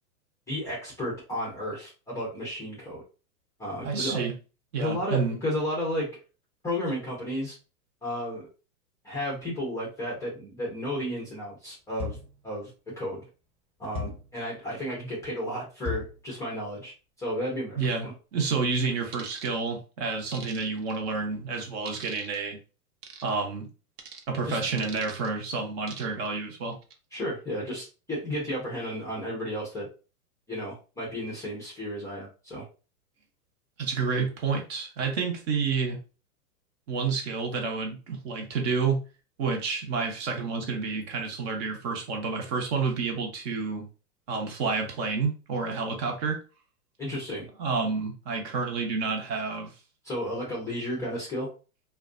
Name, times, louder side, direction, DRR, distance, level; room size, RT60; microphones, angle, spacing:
voice 1, 0.5-3.0 3.6-4.2 4.8-6.2 6.6-7.6 8.0-8.5 9.0-12.2 12.4-13.3 13.8-18.1 24.5-24.6 27.1-29.9 30.5-32.6 47.0-47.5 50.0-51.5, equal, 5° left, 0.4 m, -33 dB
voice 2, 3.8-4.3 4.7-5.4 17.8-22.6 23.2-23.7 24.3-26.8 33.8-36.0 36.9-39.0 39.4-43.9 44.3-46.4 47.6-49.7, right 4 dB, 45° right, 0.8 m, -29 dB
sound 1, 12.0-12.4 13.9-14.4 15.8-16.2, left 5 dB, 10° right, 0.8 m, -35 dB
sound 2, 19.1-19.5 20.3-21.0 21.9-22.4 23.0-23.3 24.0-24.2 24.8-25.3 25.9-26.3 26.7-26.9, right 5 dB, 85° right, 0.8 m, -43 dB
2.4 x 2.2 x 2.4 m
hypercardioid pair, 125°, 46 cm